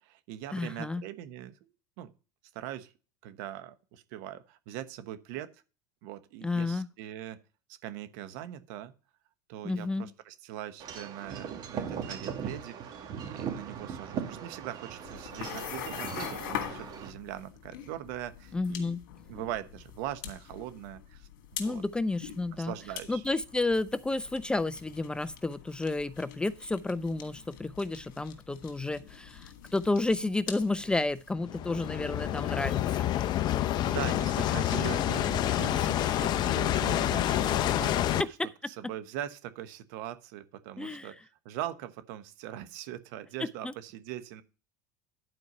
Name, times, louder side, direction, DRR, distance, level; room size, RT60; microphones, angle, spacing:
voice 1, 0.0-2.1 2.5-2.9 3.2-5.5 6.0-7.4 7.7-8.9 9.5-19.0 19.3-21.3 21.6-21.8 22.2-23.2 33.9-38.3 38.7-41.2 41.4-44.4, right 12 dB, 70° right, 11 dB, 1.1 m, -41 dB
voice 2, 0.5-1.0 6.4-6.9 9.6-10.1 18.5-19.0 21.6-22.7 23.1-33.1 38.2-38.3 40.8-41.1 43.4-43.7, left 2 dB, 10° left, 16 dB, 0.4 m, -31 dB
Wind chime / Wind, 10.8-17.1, right 7 dB, 45° right, 2.3 m, -39 dB
sound 1, 15.0-31.3, left 10 dB, 85° left, 1.9 m, -44 dB
sound 2, 31.4-38.2, left 12 dB, 45° left, 0.7 m, -28 dB
11.0 x 4.6 x 5.4 m, 0.33 s
supercardioid pair, 125°, 11 cm